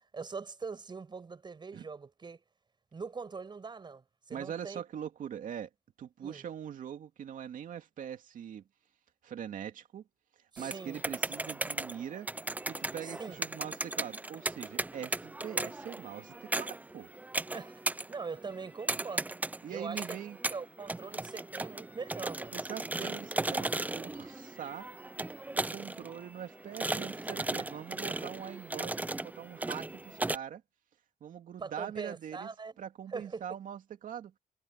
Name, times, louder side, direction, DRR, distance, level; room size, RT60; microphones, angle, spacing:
voice 1, 0.1-2.4 2.9-4.8 6.2-6.4 10.5-11.0 13.0-13.4 17.5-19.3 19.7-20.0 20.5-22.5 31.6-32.8 33.1-33.5, right 4 dB, 30° right, 6.5 m, -42 dB
voice 2, 4.3-5.7 6.0-8.6 9.2-10.0 10.6-12.3 12.7-17.1 19.6-20.4 22.5-24.9 25.5-30.6 31.2-32.5 32.8-34.3, right 9 dB, 65° right, 2.7 m, -42 dB
sound 1, 10.6-30.4, right 2 dB, 10° right, 0.6 m, -37 dB
cardioid pair, 120°, 14 cm